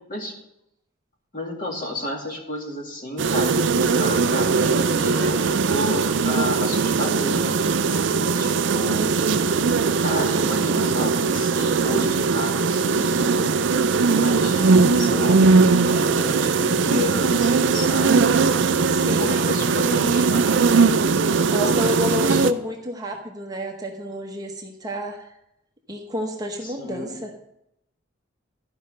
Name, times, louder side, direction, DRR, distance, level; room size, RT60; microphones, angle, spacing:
voice 1, 1.3-9.1 10.0-13.5 14.0-18.3 19.2-20.6 21.3-22.4 26.6-27.2, left 1 dB, 40° left, 0 dB, 2.3 m, -31 dB
sound 1, 3.2-22.5, right 4 dB, 65° right, 0.5 m, -20 dB
voice 2, 18.9-19.4 21.5-25.3 25.9-27.3, left 1 dB, 20° right, 2 dB, 0.9 m, -29 dB
12.5 x 5.3 x 6.5 m, 0.81 s
head